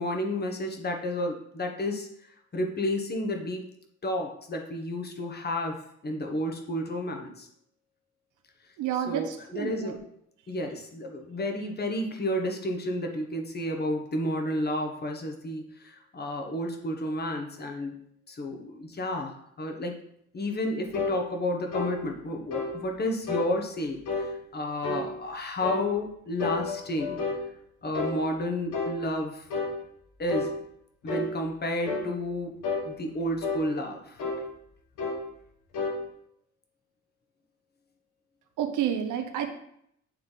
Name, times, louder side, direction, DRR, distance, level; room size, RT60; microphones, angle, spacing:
voice 1, 0.0-2.1 2.5-3.6 4.0-5.8 6.0-7.5 9.1-10.0 10.5-18.0 18.3-20.0 20.3-27.2 27.8-29.5 30.2-30.5 31.0-34.2, left 1 dB, 35° left, 2 dB, 1.3 m, -31 dB
voice 2, 8.8-10.0 38.6-39.5, right 9 dB, 85° right, 6 dB, 0.9 m, -30 dB
sound 1, 20.9-21.2 21.7-22.0 22.5-22.7 23.3-23.5 24.1-24.3 24.8-25.1 25.6-25.9 26.4-27.4 27.9-28.2 28.7-29.0 29.5-29.7 30.3-30.5 31.1-31.3 31.9-32.1 32.6-32.9 33.4-33.7 34.2-34.4 35.0-35.2 35.7-36.0, left 3 dB, 80° left, 1.5 m, -30 dB
8.8 x 3.6 x 4.0 m, 0.71 s
cardioid pair, 90°, 30 cm